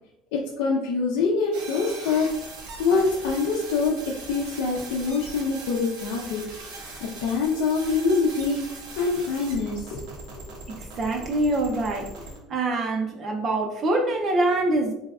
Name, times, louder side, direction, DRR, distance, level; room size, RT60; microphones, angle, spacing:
voice 1, 0.3-2.3 2.8-4.0 4.3-10.1, left 4 dB, 75° left, -3 dB, 0.5 m, -25 dB
sound 1, 1.5-12.4, right 3 dB, 90° right, 1.2 m, -40 dB
voice 2, 10.7-12.1 12.5-14.9, right 2 dB, 25° right, 2 dB, 0.4 m, -25 dB
4.1 x 3.3 x 2.3 m, 0.85 s
cardioid pair, 175°, 0 cm